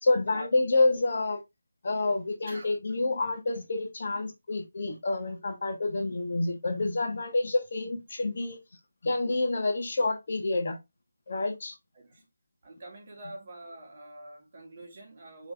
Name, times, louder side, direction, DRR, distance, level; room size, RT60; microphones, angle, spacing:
voice 1, 0.0-1.4 1.8-8.6 9.0-10.8 11.3-11.8, left 2 dB, 45° left, 0.9 m, -28 dB
voice 2, 2.4-2.8 11.9-12.2 12.6-15.5, right 2 dB, 35° right, 1.5 m, -45 dB
4.7 x 3.1 x 2.5 m
figure-of-eight pair, 170°, 0 cm